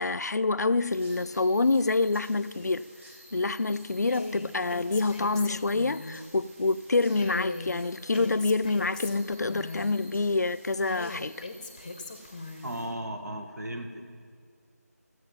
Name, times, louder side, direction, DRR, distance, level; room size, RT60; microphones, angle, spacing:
voice 1, 0.0-2.9 3.3-11.3, left 3 dB, 75° left, 0.4 m, -27 dB
sound 1, 0.9-12.8, equal, 45° right, 3.5 m, -53 dB
Female speech woman speaking, 4.1-6.2 7.1-10.0 10.8-12.7, left 3 dB, 25° left, 0.6 m, -39 dB
voice 2, 12.6-14.1, right 1 dB, 85° right, 1.5 m, -36 dB
14.5 x 8.0 x 5.5 m
figure-of-eight pair, 165°, 9 cm